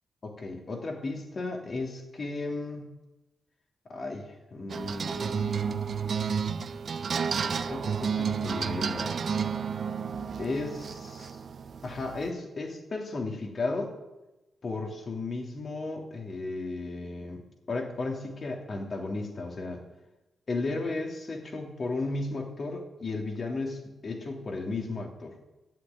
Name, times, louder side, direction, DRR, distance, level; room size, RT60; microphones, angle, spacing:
voice 1, 0.2-2.9 3.9-5.7 7.4-9.2 10.4-11.4 11.8-13.9 14.6-17.4 17.7-19.8 20.5-25.3, left 3 dB, 55° left, 2 dB, 3.0 m, -34 dB
sound 1, 4.7-12.3, right 6 dB, 65° right, 0.8 m, -31 dB
11.0 x 8.3 x 9.4 m, 1.0 s
supercardioid pair, 50°, 0 cm